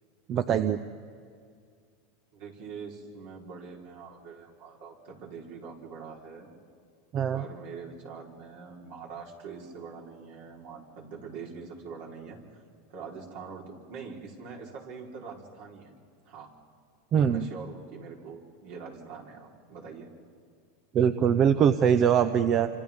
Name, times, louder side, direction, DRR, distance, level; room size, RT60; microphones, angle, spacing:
voice 1, 0.3-0.8 7.1-7.4 17.1-17.5 20.9-22.7, right 8 dB, 35° right, 10 dB, 0.6 m, -22 dB
voice 2, 2.3-6.5 7.3-12.6 12.9-15.9 16.3-16.5 17.2-20.1, right 5 dB, 60° right, -2 dB, 4.0 m, -43 dB
29.0 x 26.0 x 3.6 m, 2.1 s
supercardioid pair, 135°, 0 cm